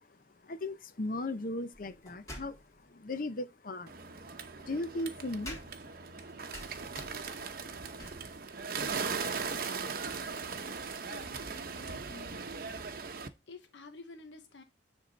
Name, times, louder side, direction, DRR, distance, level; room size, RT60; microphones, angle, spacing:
voice 1, 0.4-2.6 2.9-3.9 4.7-5.6 6.2-6.3, left 2 dB, 50° left, 0.7 m, -37 dB
sound 1, 1.7-2.9 4.0-12.7, equal, 20° left, 3.3 m, -52 dB
Bird, 3.9-13.3, right 5 dB, 55° right, 0.9 m, -39 dB
voice 2, 11.1-12.9 13.5-14.6, left 3 dB, 90° left, 1.0 m, -51 dB
9.7 x 3.7 x 4.0 m
head